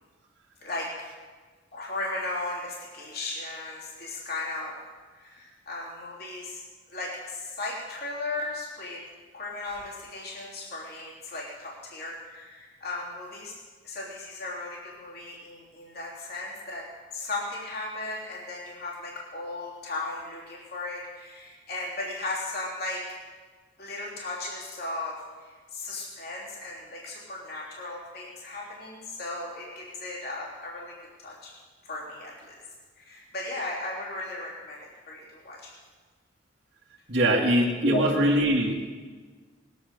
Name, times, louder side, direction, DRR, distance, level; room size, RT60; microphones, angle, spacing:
voice 1, 1.7-4.8 5.1-9.0 9.3-13.6 13.8-16.9 17.1-23.0 23.8-31.5 31.8-32.6 33.0-35.7 37.8-38.1, left 2 dB, 50° left, -4 dB, 3.5 m, -36 dB
voice 2, 37.1-38.8, right 1 dB, 55° right, -5 dB, 2.1 m, -22 dB
20.0 x 10.0 x 6.8 m, 1.4 s
head